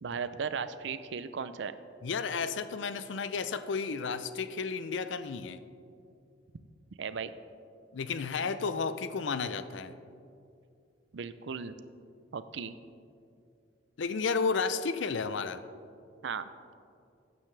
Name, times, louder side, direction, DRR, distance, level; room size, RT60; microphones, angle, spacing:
voice 1, 0.0-1.8 7.0-7.3 11.1-11.7 12.3-12.7 16.2-16.5, right 6 dB, 65° right, 13 dB, 0.5 m, -36 dB
voice 2, 2.0-5.6 7.9-9.9 14.0-15.6, left 5 dB, 70° left, 13 dB, 0.5 m, -32 dB
13.0 x 9.4 x 3.3 m, 2.5 s
head